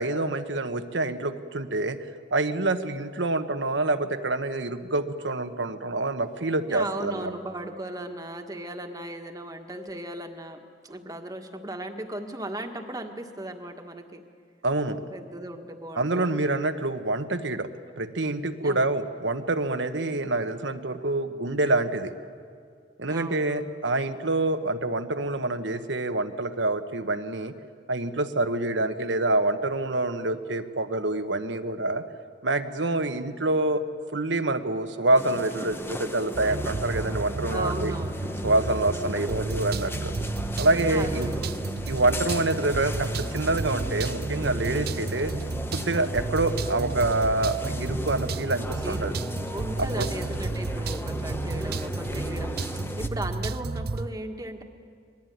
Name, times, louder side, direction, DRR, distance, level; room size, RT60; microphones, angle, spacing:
voice 1, 0.0-2.0 2.3-7.3 14.6-15.0 16.0-17.7 18.0-22.1 23.0-27.5 27.9-32.0 32.4-33.8 34.1-37.9 38.4-40.1 40.6-41.3 41.9-45.3 45.7-49.1 49.8-50.1, right 2 dB, 80° right, 9 dB, 1.3 m, -26 dB
voice 2, 6.7-14.2 15.1-16.4 18.6-18.9 23.1-23.7 37.5-38.4 40.9-41.8 48.8-49.1 49.5-54.6, right 1 dB, 20° right, 5 dB, 1.7 m, -37 dB
sound 1, 35.1-53.1, left 1 dB, 15° left, 0.9 m, -37 dB
sound 2, 36.3-54.1, right 3 dB, 55° right, 0.6 m, -32 dB
25.0 x 20.5 x 9.4 m, 2.3 s
head